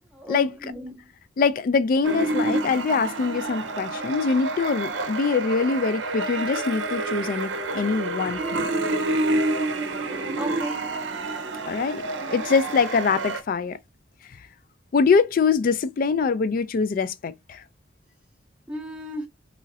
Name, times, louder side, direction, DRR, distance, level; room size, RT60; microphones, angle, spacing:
voice 1, 0.1-1.1 10.3-10.9 18.7-19.3, right 1 dB, 5° right, 0.6 m, -34 dB
voice 2, 1.4-8.7 11.7-12.0 12.3-13.8 14.9-17.6, left 5 dB, 50° left, 0.3 m, -23 dB
sound 1, 2.0-13.4, right 2 dB, 80° right, 0.6 m, -28 dB
3.0 x 2.5 x 2.6 m
head